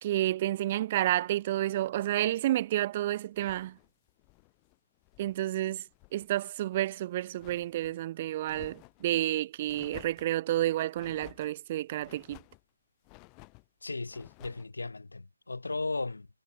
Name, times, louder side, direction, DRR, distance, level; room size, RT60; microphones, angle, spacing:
voice 1, 0.0-3.7 5.2-5.8 6.1-12.4, right 14 dB, 25° right, 0.5 m, -30 dB
sound 1, 3.3-5.4 5.7-6.3 6.7-8.0 8.4-9.1 9.7-10.4 10.9-11.5 12.0-12.6 13.0-13.7 14.1-14.7, left 33 dB, 15° left, 5.6 m, -54 dB
voice 2, 13.8-16.3, left 3 dB, 75° left, 2.0 m, -36 dB
figure-of-eight pair, 160°, 0 cm